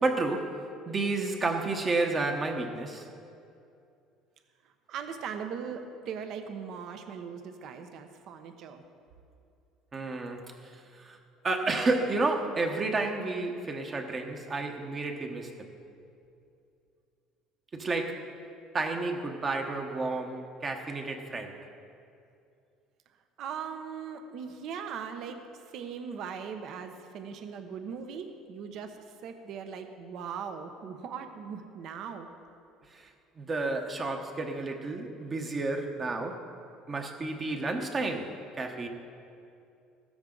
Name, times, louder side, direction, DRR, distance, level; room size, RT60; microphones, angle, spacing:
voice 1, 0.0-3.1 9.9-11.2 11.4-15.7 17.7-18.3 18.7-21.7 32.9-33.1 33.4-36.5 36.9-38.9, right 3 dB, 25° right, 4 dB, 1.0 m, -31 dB
voice 2, 4.9-8.8 23.4-32.3, right 6 dB, 55° right, 7 dB, 0.9 m, -39 dB
15.0 x 13.5 x 3.9 m, 2.6 s
cardioid pair, 135°, 0 cm